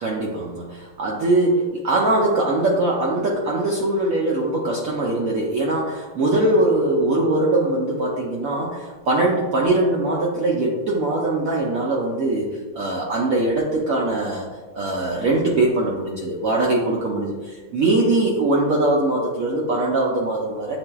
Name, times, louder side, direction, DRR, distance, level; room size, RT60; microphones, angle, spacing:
voice 1, 0.0-14.5 14.7-17.3 17.7-20.8, right 2 dB, 70° right, -3 dB, 0.8 m, -21 dB
7.5 x 2.5 x 2.2 m, 1.3 s
omnidirectional pair, 1.9 m